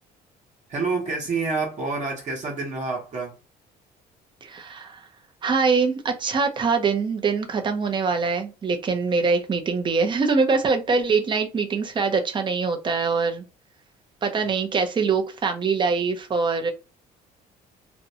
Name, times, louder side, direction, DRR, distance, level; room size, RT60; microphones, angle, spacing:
voice 1, 0.7-3.4, right 4 dB, 45° right, 1.0 m, -28 dB
voice 2, 4.4-5.1 5.4-13.4 14.2-16.7, right 4 dB, 30° right, 0.6 m, -23 dB
2.6 x 2.2 x 2.7 m
cardioid pair, 110°, 17 cm